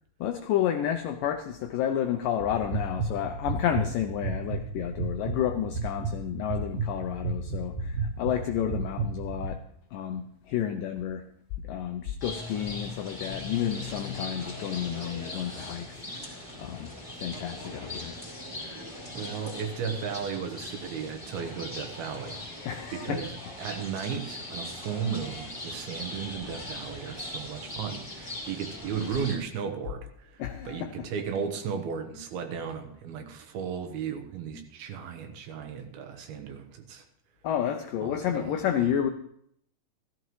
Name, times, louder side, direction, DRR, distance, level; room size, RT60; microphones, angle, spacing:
voice 1, 0.2-9.6 9.9-11.2 11.6-18.2 18.5-18.9 22.6-23.2 30.4-30.9 37.4-39.1, left 10 dB, 80° left, 6 dB, 2.0 m, -31 dB
sound 1, 2.4-9.5, right 3 dB, 55° right, 2.8 m, -33 dB
sound 2, 12.2-29.4, left 2 dB, 10° left, 3.1 m, -40 dB
voice 2, 19.1-37.1 38.0-38.9, right 7 dB, 75° right, 6 dB, 2.9 m, -35 dB
15.0 x 14.0 x 3.1 m, 0.70 s
omnidirectional pair, 4.6 m